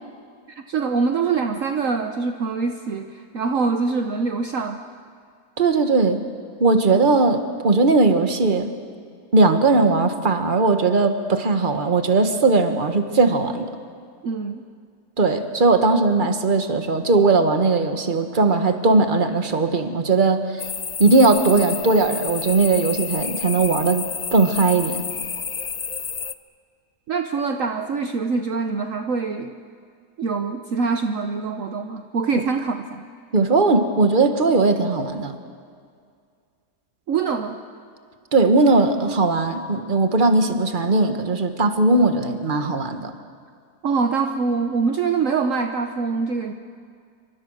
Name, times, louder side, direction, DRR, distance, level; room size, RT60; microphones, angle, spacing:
voice 1, 0.5-4.8 14.2-14.6 27.1-29.5 30.2-33.0 37.1-37.6 43.8-46.5, right 5 dB, 55° right, 6 dB, 1.2 m, -24 dB
voice 2, 5.6-6.2 6.6-8.7 9.3-13.7 15.2-20.7 21.0-24.0 24.3-25.0 32.3-32.4 33.3-35.4 38.3-43.1, right 3 dB, 30° right, 7 dB, 1.6 m, -19 dB
sound 1, 20.6-26.3, left 6 dB, 55° left, 0.4 m, -30 dB
28.0 x 25.0 x 6.5 m, 2.2 s
omnidirectional pair, 1.7 m